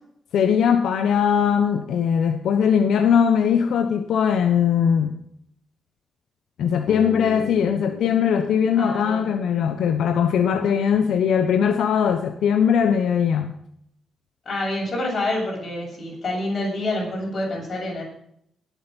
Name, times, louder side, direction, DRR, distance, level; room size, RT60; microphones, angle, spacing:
voice 1, 0.3-5.2 6.6-13.6, left 7 dB, 75° left, 1.1 m, -20 dB
Bass guitar, 6.9-11.0, left 5 dB, 60° left, 1.8 m, -37 dB
voice 2, 8.8-9.3 14.5-18.0, left 1 dB, 40° left, 7.4 m, -27 dB
19.5 x 8.7 x 5.5 m
wide cardioid pair, 150°, 0 cm